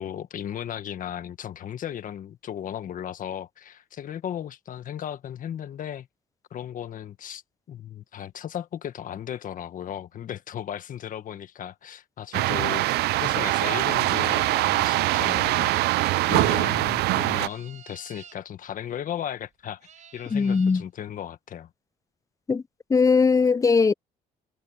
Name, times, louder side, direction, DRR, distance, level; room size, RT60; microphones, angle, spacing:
voice 1, 0.0-6.1 6.5-7.4 7.7-15.8 16.3-19.8 20.1-21.7, left 10 dB, 55° left, 1.6 m, -35 dB
sound 1, 12.3-17.5, right 18 dB, 75° right, 0.4 m, -23 dB
sound 2, 17.1-18.4 19.4-19.5 19.8-20.8, right 8 dB, 45° right, 6.1 m, -48 dB
voice 2, 20.3-20.8 22.5-22.6 22.9-23.9, left 5 dB, 20° left, 0.6 m, -20 dB
cardioid pair, 110°, 17 cm